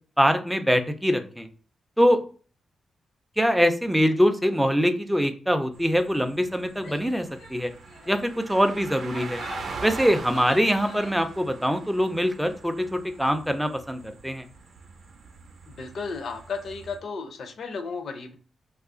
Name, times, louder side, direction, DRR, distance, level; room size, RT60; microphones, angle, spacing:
voice 1, 0.2-1.5 2.0-2.2 3.4-7.7 8.1-9.4 9.8-14.4, equal, ahead, 7 dB, 0.3 m, -23 dB
sound 1, 5.7-17.0, right 4 dB, 60° right, 0.5 m, -42 dB
Female speech woman speaking / Yell, 6.8-7.1 7.4-7.6 7.8-8.2 8.9-11.3, left 3 dB, 85° left, 0.9 m, -44 dB
voice 2, 15.7-18.4, left 4 dB, 55° left, 7 dB, 0.5 m, -34 dB
3.0 x 2.3 x 3.6 m, 0.41 s
wide cardioid pair, 165°, 0 cm